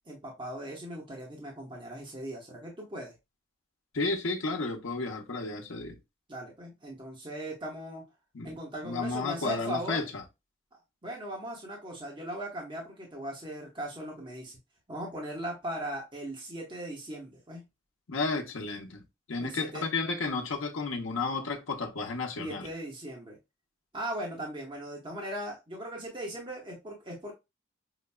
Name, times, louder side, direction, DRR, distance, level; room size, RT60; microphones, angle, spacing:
voice 1, 0.1-3.1 6.3-8.0 8.4-10.1 11.0-14.5 14.9-17.6 19.4-19.9 22.4-23.4 23.9-27.3, right 1 dB, 25° right, 1.1 m, -38 dB
voice 2, 3.9-6.0 8.3-8.5 8.8-10.2 18.1-19.0 19.3-22.7, left 3 dB, 70° left, 0.8 m, -32 dB
5.8 x 2.2 x 2.2 m
head